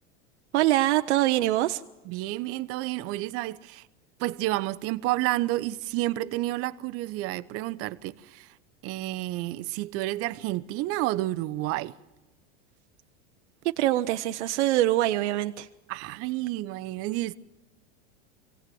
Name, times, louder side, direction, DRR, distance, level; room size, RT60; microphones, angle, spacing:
voice 1, 0.5-1.8 13.8-15.7, right 15 dB, 80° right, 0.8 m, -24 dB
voice 2, 2.0-3.8 4.2-8.5 8.8-12.0 15.9-17.4, right 17 dB, 40° right, 0.8 m, -30 dB
24.0 x 17.5 x 7.7 m
supercardioid pair, 135°, 34 cm